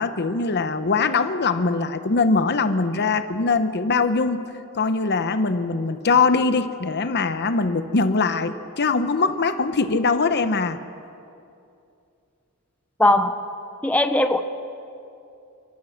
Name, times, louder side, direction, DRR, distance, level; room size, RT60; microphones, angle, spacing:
voice 1, 0.0-10.8, left 4 dB, 50° left, 10 dB, 0.9 m, -22 dB
voice 2, 13.0-13.4 13.8-14.4, left 1 dB, 5° left, 7 dB, 0.7 m, -18 dB
29.0 x 14.0 x 6.5 m, 2.6 s
head